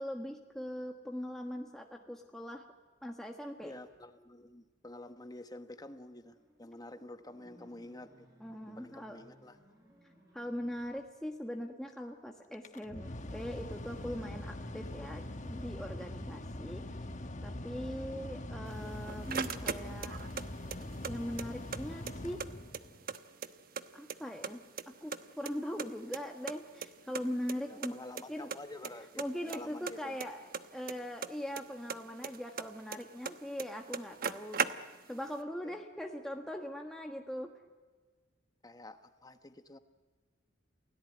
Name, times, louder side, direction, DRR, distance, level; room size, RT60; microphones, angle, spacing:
voice 1, 0.0-2.6 3.0-3.7 8.4-9.2 10.3-17.0 17.4-20.1 21.0-22.5 23.9-24.6 24.9-27.9 28.3-28.5 29.2-37.5, equal, 5° left, 2 dB, 1.4 m, -41 dB
voice 2, 3.6-8.3 8.7-9.6 27.7-30.2 35.6-35.8 38.6-39.8, left 1 dB, 20° left, 9 dB, 1.3 m, -49 dB
sound 1, 3.8-4.1 5.9-11.1, equal, 15° right, 7.2 m, -63 dB
Mechanical fan, 12.5-23.1, left 1 dB, 40° left, 1.4 m, -43 dB
sound 2, 18.7-20.4 20.7-21.8 22.1-22.2 22.4-23.8 24.1-24.8 25.1-26.6 26.8-26.9 27.2-27.3 27.5-27.6 27.8-28.2 28.5-28.9 29.2-31.6 31.9-33.3 33.6-33.7 33.9-35.2, right 6 dB, 50° right, 1.1 m, -37 dB
28.5 x 17.5 x 9.3 m, 1.4 s
head